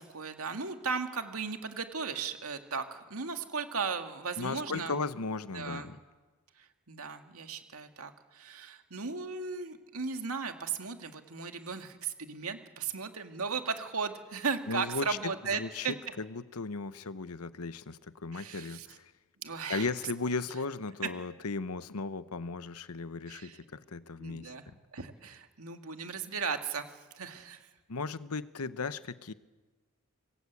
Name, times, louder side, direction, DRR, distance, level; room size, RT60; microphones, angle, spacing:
voice 1, 0.0-5.0 5.5-5.9 6.6-15.9 18.3-18.9 19.4-19.9 23.3-23.6 24.2-27.7, right 5 dB, 75° right, 6 dB, 2.2 m, -36 dB
voice 2, 4.4-6.0 14.7-19.1 19.7-24.8 27.9-29.3, left 4 dB, 90° left, 14 dB, 1.0 m, -36 dB
26.0 x 20.5 x 8.4 m, 1.3 s
head